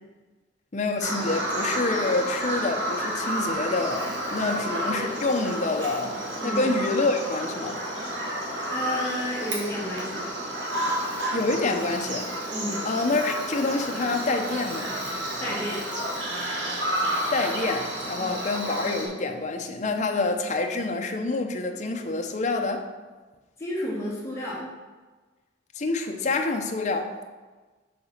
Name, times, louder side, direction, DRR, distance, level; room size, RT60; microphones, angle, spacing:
voice 1, 0.7-7.8 11.3-12.3 12.8-14.9 17.3-22.9 25.7-27.1, left 3 dB, 40° left, 4 dB, 0.6 m, -27 dB
Bird vocalization bird call bird song, 1.0-19.1, right 1 dB, 70° right, 1.5 m, -31 dB
voice 2, 8.7-10.2 12.5-12.9 15.4-15.9 18.2-18.3 23.6-24.7, left 1 dB, 15° left, -6 dB, 1.9 m, -31 dB
6.8 x 3.9 x 5.5 m, 1.3 s
head